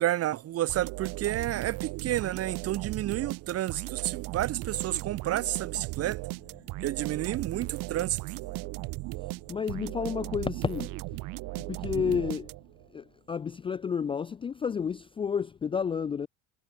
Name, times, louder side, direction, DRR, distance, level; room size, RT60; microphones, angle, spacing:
voice 1, 0.0-6.2 6.8-8.2 11.9-12.2, right 13 dB, 45° right, 2.2 m, -30 dB
sound 1, 0.7-12.9, right 23 dB, 75° right, 4.0 m, -37 dB
voice 2, 9.5-11.0 11.5-12.5 12.9-16.3, left 6 dB, 15° left, 0.4 m, -31 dB
cardioid pair, 160°, 34 cm